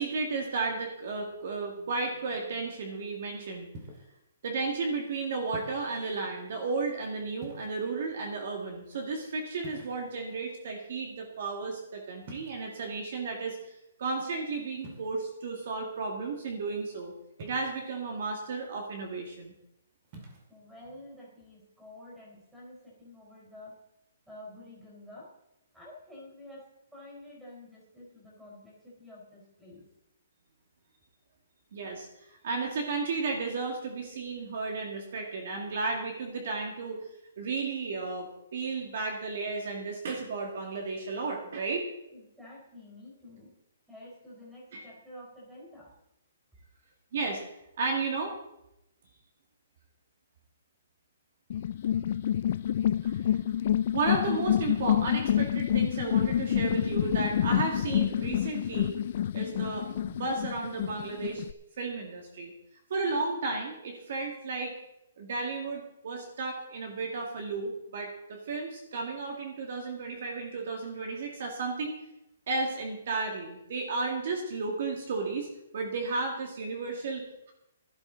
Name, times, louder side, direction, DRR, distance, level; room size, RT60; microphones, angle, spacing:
voice 1, 0.0-3.7 4.4-13.7 14.0-17.1 17.4-19.5 31.7-32.1 32.4-37.0 37.4-41.9 44.7-44.9 47.1-47.4 47.8-48.3 53.0-53.4 53.9-59.0 59.3-61.4 61.8-62.5 62.9-64.7 65.2-72.0 72.5-77.5, right 3 dB, 50° right, 2 dB, 2.2 m, -33 dB
sound 1, 3.7-4.2 5.5-5.9 7.4-8.0 9.6-10.3 12.2-12.8 14.8-15.1 17.4-17.9 20.0-20.5, right 1 dB, 25° right, 2.3 m, -47 dB
voice 2, 20.5-23.8 24.3-25.3 25.7-29.9 42.1-43.6 43.9-45.9, left 1 dB, 5° right, -5 dB, 4.4 m, -49 dB
sound 2, 51.5-61.5, left 10 dB, 40° left, 0.4 m, -28 dB
17.0 x 11.5 x 4.0 m, 0.84 s
hypercardioid pair, 170°, 0 cm